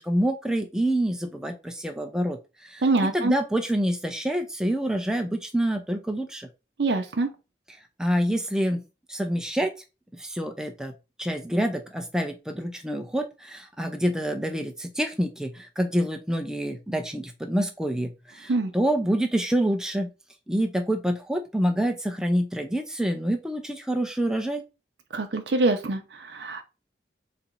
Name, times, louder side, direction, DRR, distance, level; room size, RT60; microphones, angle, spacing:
voice 1, 0.0-2.8 3.1-6.5 8.0-8.8 9.1-9.7 10.1-10.9 11.2-20.1 20.5-24.6, right 1 dB, 5° right, 4 dB, 0.6 m, -27 dB
voice 2, 2.8-3.3 6.8-7.3 18.5-18.7 25.1-26.6, right 3 dB, 80° right, 5 dB, 0.6 m, -24 dB
4.2 x 2.9 x 3.8 m, 0.28 s
head